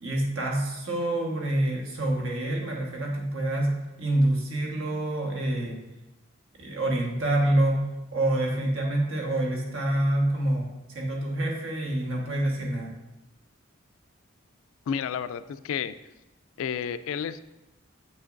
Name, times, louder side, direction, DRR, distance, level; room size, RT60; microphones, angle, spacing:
voice 1, 0.0-5.8 6.6-10.7 10.9-12.9, right 1 dB, 85° right, 0 dB, 1.3 m, -27 dB
voice 2, 14.9-15.9 16.6-17.4, left 7 dB, 80° left, 13 dB, 0.3 m, -31 dB
7.6 x 6.3 x 2.5 m, 0.98 s
head